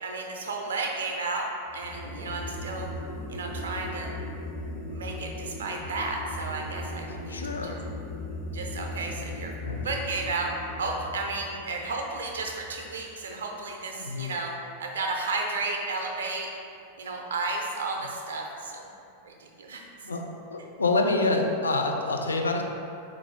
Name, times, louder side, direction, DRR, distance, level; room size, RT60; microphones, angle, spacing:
voice 1, 0.0-2.9 3.3-4.1 4.9-7.4 7.6-7.8 8.5-9.5 9.8-10.5 10.8-14.5 14.8-16.5 17.0-18.9 19.2-19.8, right 3 dB, 65° right, 1 dB, 0.4 m, -33 dB
sound 1, 1.7-13.0, left 1 dB, 35° left, 0.7 m, -38 dB
voice 2, 7.1-7.9 9.1-9.3 9.6-9.8 13.9-14.3 18.0-18.1 20.0-20.2 20.5-22.6, left 3 dB, 75° left, 2 dB, 0.3 m, -27 dB
4.0 x 2.5 x 3.0 m, 2.6 s
figure-of-eight pair, 90°, 0 cm